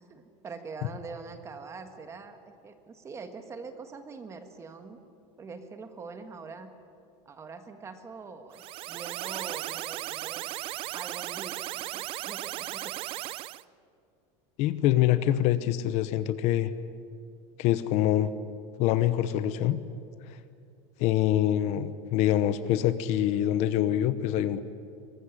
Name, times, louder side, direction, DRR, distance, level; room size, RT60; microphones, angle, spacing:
voice 1, 0.1-5.0 5.4-6.7 7.2-10.5 10.9-12.9, right 4 dB, 20° right, 8 dB, 1.5 m, -43 dB
sound 1, 8.5-13.6, right 16 dB, 35° right, 0.5 m, -36 dB
voice 2, 14.6-16.7 17.6-18.3 18.8-19.8 20.3-20.4 21.0-24.6, left 12 dB, 45° left, 13 dB, 0.9 m, -25 dB
24.0 x 19.5 x 9.9 m, 2.4 s
cardioid pair, 170°, 16 cm